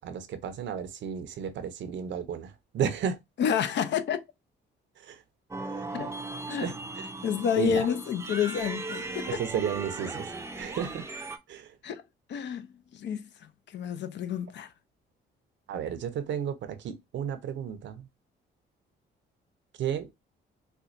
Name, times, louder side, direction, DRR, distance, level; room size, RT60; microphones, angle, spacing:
voice 1, 0.0-3.2 5.0-5.2 5.7-5.8 6.6-7.1 7.6-7.9 9.3-10.3 10.5-11.1 11.5-11.7 15.7-18.1 19.8-20.1, right 8 dB, 70° right, 0.6 m, -33 dB
voice 2, 3.4-4.2 5.9-6.1 6.5-6.7 7.2-9.4 11.8-12.0 12.3-12.7 12.9-13.2 13.7-14.7, left 8 dB, 65° left, 0.6 m, -29 dB
sound 1, 5.5-11.4, right 2 dB, 15° right, 0.5 m, -38 dB
4.2 x 2.2 x 2.5 m
cardioid pair, 90°, 20 cm